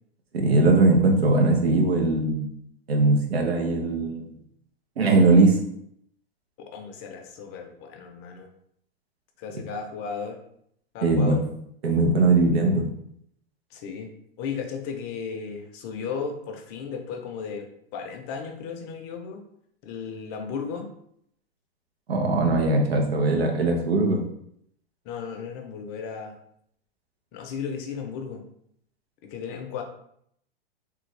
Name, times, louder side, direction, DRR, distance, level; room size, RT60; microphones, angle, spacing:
voice 1, 0.3-2.5 2.9-4.3 5.0-5.6 11.0-11.4 11.8-12.9 22.1-24.2, right 2 dB, 90° right, 2 dB, 0.9 m, -20 dB
voice 2, 6.6-8.5 9.4-10.4 10.9-11.4 13.7-14.1 14.4-19.4 19.8-20.9 25.0-26.4 27.3-28.4 29.2-29.8, left 6 dB, 35° left, 4 dB, 0.6 m, -35 dB
3.4 x 2.3 x 3.2 m, 0.69 s
hypercardioid pair, 120°, 30 cm